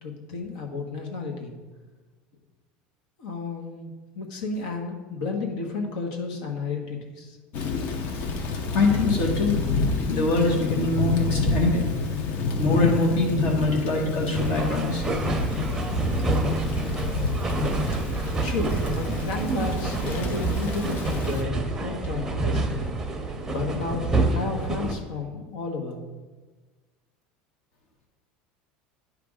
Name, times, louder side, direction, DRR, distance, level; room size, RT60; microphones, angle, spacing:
voice 1, 0.0-1.5 3.2-7.4 18.4-22.9 23.5-24.0 24.3-26.0, left 3 dB, 80° left, 2 dB, 1.3 m, -32 dB
Thunder / Rain, 7.5-21.4, left 3 dB, 50° left, 0.7 m, -29 dB
voice 2, 8.7-9.6 10.1-11.8 12.6-15.0, left 3 dB, 65° left, -1 dB, 1.3 m, -23 dB
sound 1, 14.3-24.9, right 2 dB, 10° right, 0.6 m, -27 dB
10.0 x 3.4 x 4.9 m, 1.3 s
cardioid pair, 155°, 4 cm